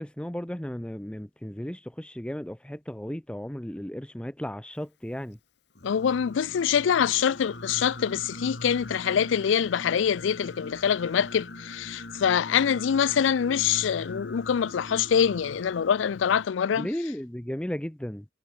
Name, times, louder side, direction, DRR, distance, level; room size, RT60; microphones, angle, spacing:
voice 1, 0.0-5.4 16.7-18.2, equal, 5° left, 0.5 m, -35 dB
Singing, 5.7-16.5, left 2 dB, 55° left, 2.5 m, -41 dB
voice 2, 5.8-16.9, left 8 dB, 70° left, 0.4 m, -25 dB
head